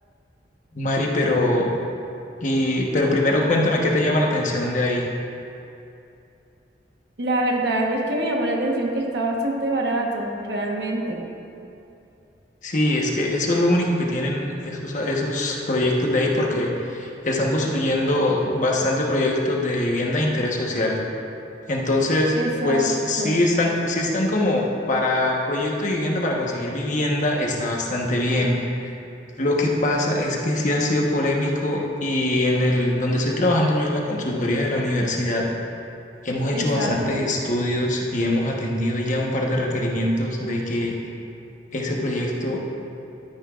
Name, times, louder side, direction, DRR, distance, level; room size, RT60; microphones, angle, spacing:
voice 1, 0.7-1.7 2.4-5.1 12.6-21.0 21.7-28.9 29.4-35.4 36.2-40.9 41.7-42.7, left 1 dB, 45° left, -1 dB, 1.2 m, -22 dB
voice 2, 7.2-11.2 22.3-22.9 23.2-23.4 36.5-37.2, right 1 dB, 65° right, -1 dB, 1.2 m, -25 dB
12.5 x 9.8 x 2.5 m, 2.7 s
head